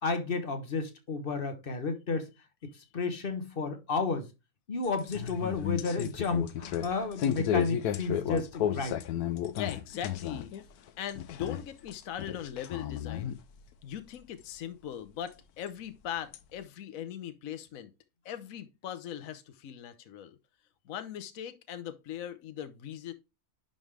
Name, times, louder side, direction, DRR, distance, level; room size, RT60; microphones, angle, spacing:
voice 1, 0.0-2.3 2.9-4.3 4.7-9.0, left 4 dB, 40° left, 1.2 m, -32 dB
sound 1, 4.8-10.6 10.9-11.9 12.2-13.4 14.4-14.5 15.7-15.8 16.3-16.4, left 10 dB, 85° left, 1.2 m, -33 dB
voice 2, 9.5-10.5 11.0-13.4 13.8-17.9 18.2-20.4 20.9-23.1, left 10 dB, 70° left, 1.2 m, -40 dB
10.5 x 3.7 x 3.2 m
omnidirectional pair, 1.6 m